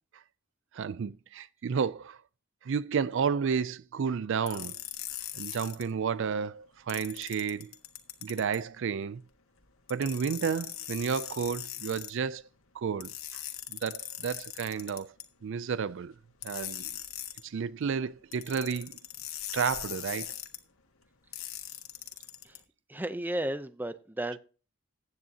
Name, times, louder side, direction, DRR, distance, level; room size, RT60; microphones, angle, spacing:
voice 1, 0.7-2.2 2.6-4.7 5.3-7.7 8.2-9.2 9.9-12.4 12.7-13.4 13.7-15.1 15.4-16.1 16.4-16.9 17.4-19.0 19.5-20.3, right 6 dB, 60° right, 0.4 m, -31 dB
sound 1, 4.5-5.8 6.9-8.6 9.9-12.1 13.0-15.2 16.4-17.4 18.3-20.6 21.3-22.6, left 12 dB, 80° left, 1.7 m, -40 dB
voice 2, 22.9-24.4, right 1 dB, 10° right, 0.6 m, -33 dB
15.0 x 9.7 x 2.8 m
head